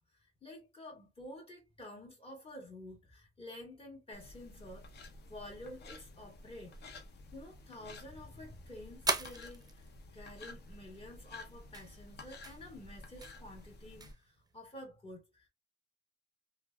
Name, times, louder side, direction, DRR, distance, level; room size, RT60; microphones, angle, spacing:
voice 1, 0.2-4.9 5.3-6.8 7.3-9.8 10.1-15.5, left 1 dB, 30° left, 1.9 m, -50 dB
sound 1, 4.1-14.1, left 2 dB, 55° left, 0.8 m, -52 dB
sound 2, 5.7-14.8, right 4 dB, 20° right, 0.5 m, -44 dB
3.1 x 2.4 x 2.3 m
cardioid pair, 90°, 20 cm